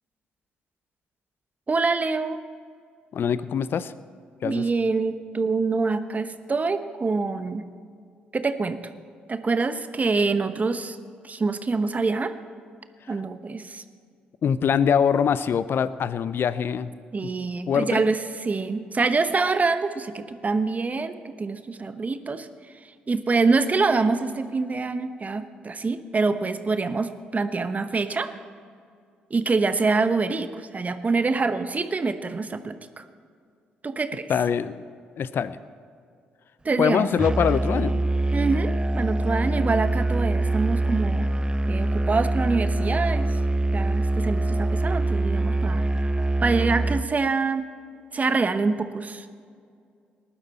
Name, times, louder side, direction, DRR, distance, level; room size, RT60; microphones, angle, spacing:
voice 1, 1.7-2.4 4.4-7.6 8.3-8.8 9.3-11.0 11.2-12.3 13.1-13.8 17.1-22.5 23.1-28.3 29.3-33.0 33.8-34.3 36.6-37.1 38.3-41.3 41.7-43.4 43.7-45.8 46.4-47.7 48.1-49.3, right 4 dB, 35° right, 10 dB, 1.0 m, -25 dB
voice 2, 3.1-3.9 4.4-4.7 14.4-16.9 17.7-18.0 34.3-34.8 35.2-35.6 36.8-38.0, left 7 dB, 55° left, 16 dB, 0.6 m, -23 dB
Musical instrument, 37.2-47.1, right 2 dB, 20° right, 0.5 m, -24 dB
19.0 x 11.5 x 4.3 m, 2.3 s
hypercardioid pair, 45°, 5 cm